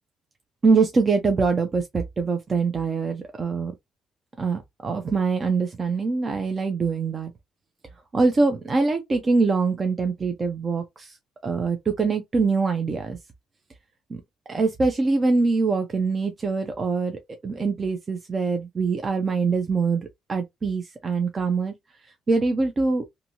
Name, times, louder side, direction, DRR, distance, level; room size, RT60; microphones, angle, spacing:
voice 1, 0.6-3.7 4.4-7.3 8.1-11.2 11.4-13.2 14.1-14.2 14.5-21.7 22.3-23.0, right 4 dB, 35° right, 0.5 m, -24 dB
2.7 x 2.6 x 2.7 m
cardioid pair, 90°, 0 cm